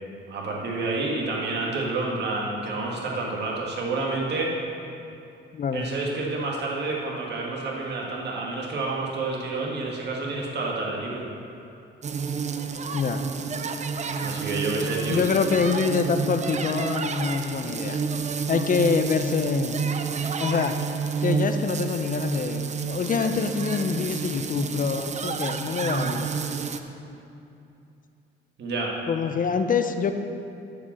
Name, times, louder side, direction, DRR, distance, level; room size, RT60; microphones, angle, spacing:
voice 1, 0.3-4.5 5.7-11.2 14.2-15.2 28.6-28.9, right 3 dB, 60° right, -2 dB, 1.8 m, -29 dB
voice 2, 5.5-5.9 12.9-13.2 15.1-18.0 18.5-19.8 20.4-20.8 21.2-26.3 29.1-30.1, left 5 dB, 45° left, 8 dB, 0.7 m, -25 dB
sound 1, 12.0-26.8, right 5 dB, 35° right, 0.6 m, -30 dB
11.5 x 5.1 x 7.3 m, 2.7 s
cardioid pair, 90°, 20 cm